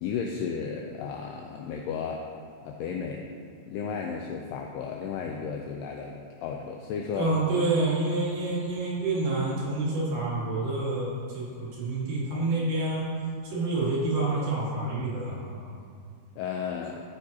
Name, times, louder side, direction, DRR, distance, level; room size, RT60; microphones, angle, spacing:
voice 1, 0.0-2.2 2.6-3.2 3.7-6.2 6.4-7.3 16.4-17.0, left 6 dB, 90° left, 1 dB, 2.3 m, -33 dB
voice 2, 7.1-13.0 13.4-15.7, right 2 dB, 60° right, -8 dB, 3.4 m, -28 dB
14.0 x 6.3 x 2.8 m, 2.3 s
omnidirectional pair, 5.2 m